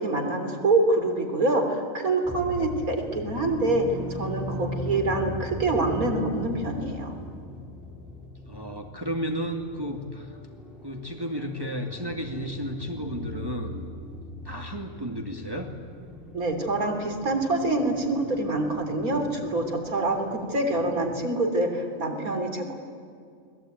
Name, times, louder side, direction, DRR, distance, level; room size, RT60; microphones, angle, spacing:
voice 1, 0.0-7.2 16.3-22.7, right 2 dB, 90° right, 5 dB, 3.8 m, -26 dB
sound 1, 2.2-21.3, left 1 dB, ahead, 3.1 m, -39 dB
voice 2, 8.5-10.4 10.8-13.8 14.4-15.7, equal, 15° right, 3 dB, 2.2 m, -33 dB
30.0 x 21.5 x 9.2 m, 2.4 s
omnidirectional pair, 1.5 m